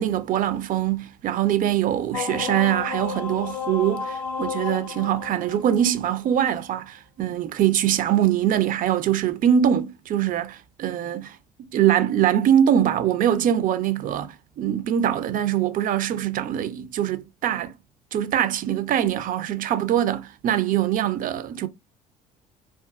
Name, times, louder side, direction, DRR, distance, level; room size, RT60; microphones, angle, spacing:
voice 1, 0.0-11.4 11.7-17.7 18.1-21.7, right 10 dB, 45° right, 0.4 m, -23 dB
sound 1, 2.1-6.4, left 7 dB, 75° left, 0.5 m, -32 dB
2.4 x 2.3 x 2.3 m
hypercardioid pair, 60°, 19 cm